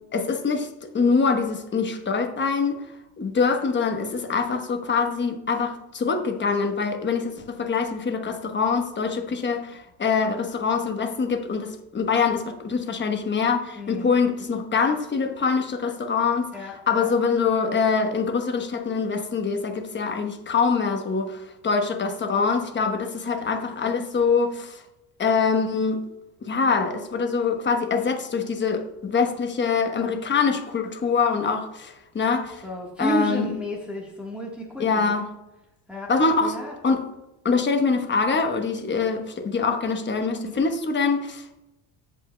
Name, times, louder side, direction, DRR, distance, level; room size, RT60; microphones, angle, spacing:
voice 1, 0.1-0.7 0.9-2.8 3.2-16.5 16.9-24.8 25.2-26.0 26.4-32.6 33.0-33.5 34.8-35.3 36.1-36.5 36.8-37.0 37.4-41.6, left 5 dB, 25° left, 5 dB, 1.0 m, -24 dB
voice 2, 13.7-14.2 16.5-17.1 23.3-24.0 32.6-35.2 35.9-36.8 40.4-40.7, equal, ahead, -4 dB, 1.4 m, -32 dB
15.5 x 5.5 x 2.2 m, 0.94 s
cardioid pair, 120°, 47 cm